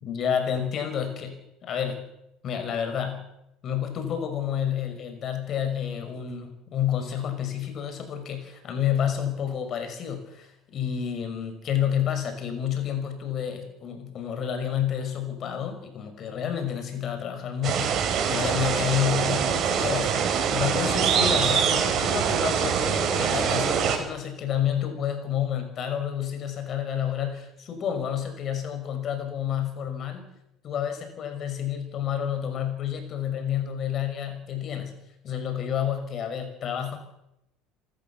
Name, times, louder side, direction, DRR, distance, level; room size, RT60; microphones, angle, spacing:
voice 1, 0.0-2.1 2.4-3.3 3.6-30.3 30.6-34.9 35.2-37.0, left 9 dB, 50° left, 8 dB, 5.8 m, -29 dB
sound 1, 17.6-24.0, right 7 dB, 50° right, 5.4 m, -24 dB
27.5 x 13.0 x 7.3 m, 0.83 s
hypercardioid pair, 75°, 0 cm